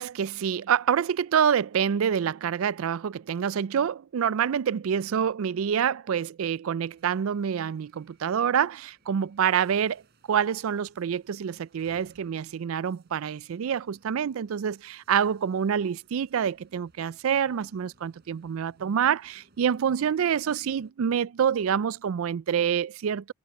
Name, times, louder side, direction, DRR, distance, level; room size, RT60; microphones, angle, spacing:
voice 1, 0.0-10.0 10.3-23.3, right 8 dB, 85° right, 0.4 m, -27 dB
sound 1, 6.8-20.9, right 2 dB, 55° right, 4.9 m, -63 dB
open air
head